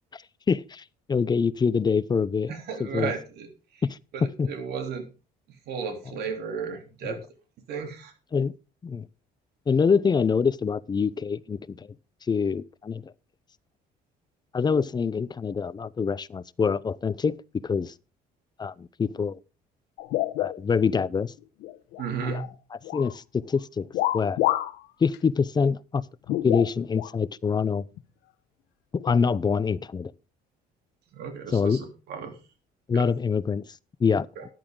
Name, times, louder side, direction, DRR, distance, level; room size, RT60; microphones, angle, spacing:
voice 1, 0.5-2.5 2.8-3.1 3.8-4.0 4.4-4.5 7.0-7.2 8.3-8.5 8.8-9.1 9.7-11.9 12.3-13.1 14.5-17.9 18.6-19.4 20.4-21.3 22.3-22.4 22.7-23.9 24.1-24.4 25.0-26.0 26.4-27.8 28.9-30.1 31.5-31.8 32.9-33.6 34.0-34.3, left 5 dB, 25° left, 0.6 m, -25 dB
voice 2, 2.5-3.5 4.1-5.1 5.7-7.2 7.7-8.1 22.0-22.4 31.1-32.3 32.9-33.0 34.4-34.5, right 6 dB, 75° right, 3.2 m, -34 dB
sound 1, 20.0-21.1 21.4-22.5 22.8-23.2 23.9-24.8 25.1-25.2 26.3-27.1 28.0-28.1 29.0-29.2, left 15 dB, 85° left, 1.0 m, -28 dB
13.5 x 11.0 x 3.8 m
cardioid pair, 110°, 17 cm